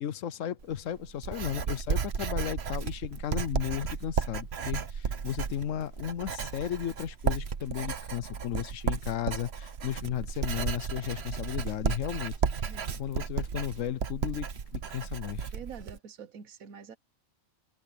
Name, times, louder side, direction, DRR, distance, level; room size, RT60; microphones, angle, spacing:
voice 1, 0.0-12.3 12.9-14.5 14.7-15.5, left 10 dB, 70° left, 1.0 m, -34 dB
Writing, 0.6-16.0, right 6 dB, 50° right, 1.2 m, -33 dB
voice 2, 12.7-13.0 15.5-17.0, right 7 dB, 85° right, 1.5 m, -46 dB
omnidirectional pair, 1.4 m